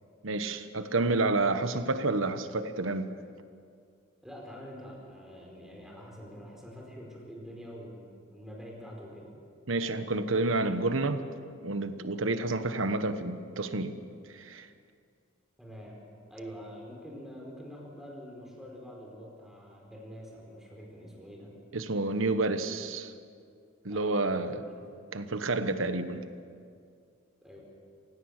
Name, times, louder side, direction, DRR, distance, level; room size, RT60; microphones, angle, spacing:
voice 1, 0.2-3.1 9.7-11.2 11.6-14.0 14.3-14.7 21.7-23.1 23.8-24.6 25.1-26.2, right 2 dB, 80° right, 1.2 m, -29 dB
voice 2, 4.2-9.3 15.6-16.0 16.3-21.5 23.9-24.8 27.4-27.6, equal, ahead, 4.5 m, -45 dB
27.5 x 16.5 x 6.6 m
head